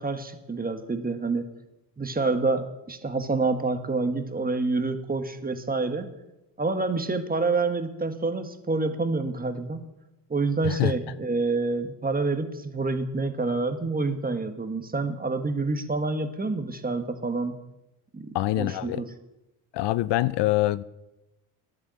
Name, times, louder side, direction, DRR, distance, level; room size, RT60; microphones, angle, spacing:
voice 1, 0.0-1.4 2.0-6.1 6.6-9.8 10.3-17.6 18.1-19.1, right 3 dB, 20° right, 1.6 m, -27 dB
voice 2, 18.3-19.0 19.7-20.8, left 16 dB, 60° left, 0.6 m, -25 dB
10.5 x 9.0 x 7.7 m
supercardioid pair, 80°, 47 cm